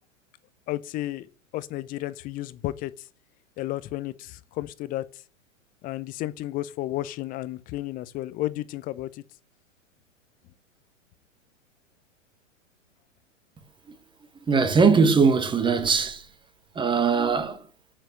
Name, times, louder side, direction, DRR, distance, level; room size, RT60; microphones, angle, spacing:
voice 1, 0.7-3.1 3.6-5.2 5.8-9.2, left 15 dB, 20° left, 0.6 m, -33 dB
voice 2, 14.5-16.3 16.7-17.7, right 5 dB, 10° right, 1.3 m, -21 dB
9.0 x 8.9 x 8.8 m
figure-of-eight pair, 100°, 39 cm